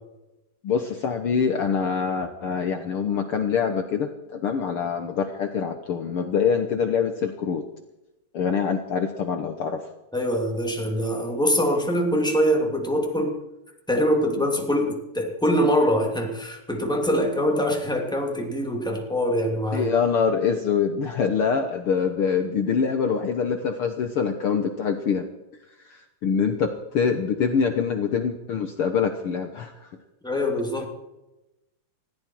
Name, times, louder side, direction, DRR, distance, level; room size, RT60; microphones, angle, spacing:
voice 1, 0.6-7.7 8.3-9.9 19.7-25.3 25.8-29.9, left 6 dB, 65° left, 6 dB, 1.4 m, -25 dB
voice 2, 10.1-13.4 13.9-19.9 30.2-30.8, equal, ahead, 1 dB, 2.1 m, -23 dB
20.0 x 15.5 x 4.6 m, 0.97 s
omnidirectional pair, 3.9 m